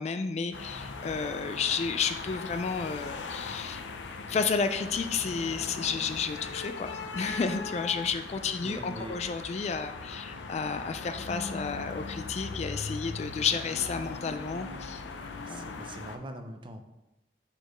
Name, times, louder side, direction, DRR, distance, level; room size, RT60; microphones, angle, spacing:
voice 1, 0.0-3.9 4.3-15.0 15.5-15.7, left 5 dB, 35° left, 9 dB, 0.3 m, -31 dB
sound 1, 0.5-16.2, left 4 dB, 90° left, 0.5 m, -39 dB
voice 2, 8.4-9.2 15.2-16.8, right 1 dB, 30° right, 6 dB, 0.5 m, -42 dB
4.8 x 4.2 x 5.1 m, 0.98 s
head